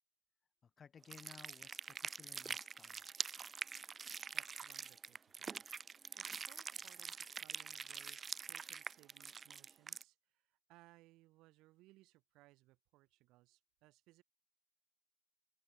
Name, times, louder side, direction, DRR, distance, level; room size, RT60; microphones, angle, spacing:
voice 1, 0.6-3.0, left 6 dB, 20° left, 5.2 m, -59 dB
sound 1, 1.0-10.0, right 5 dB, 15° right, 1.5 m, -45 dB
voice 2, 4.3-5.6 6.2-14.2, right 19 dB, 40° right, 4.2 m, -66 dB
open air
figure-of-eight pair, 90°, 0 cm